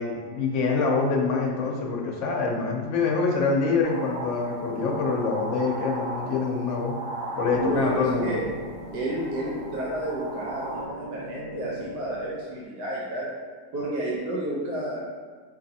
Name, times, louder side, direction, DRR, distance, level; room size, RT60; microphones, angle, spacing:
voice 1, 0.0-6.9 7.3-8.4, left 4 dB, 60° left, 0 dB, 0.8 m, -25 dB
sound 1, 3.8-10.9, right 2 dB, 25° right, 0.7 m, -37 dB
sound 2, 7.5-12.6, equal, 60° right, 1.7 m, -41 dB
voice 2, 7.6-8.4 8.9-13.3 13.7-15.0, right 1 dB, 85° right, -6 dB, 1.4 m, -31 dB
4.7 x 3.2 x 2.7 m, 1.5 s
omnidirectional pair, 1.8 m